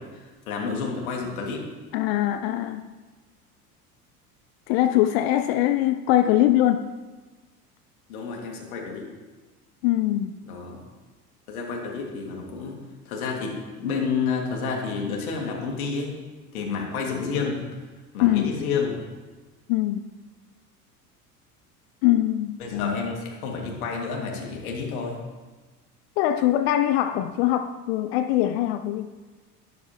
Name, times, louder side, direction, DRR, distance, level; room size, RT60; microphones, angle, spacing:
voice 1, 0.0-1.7 8.1-9.1 10.5-10.8 11.5-12.7 13.1-16.1 16.5-17.6 18.1-19.0 22.6-25.2, left 5 dB, 65° left, 0 dB, 2.3 m, -30 dB
voice 2, 1.9-2.9 4.7-6.9 9.8-10.3 18.2-18.5 19.7-20.1 22.0-23.0 26.2-29.1, left 13 dB, 45° left, 10 dB, 0.5 m, -22 dB
12.5 x 10.5 x 3.0 m, 1.3 s
figure-of-eight pair, 75°, 47 cm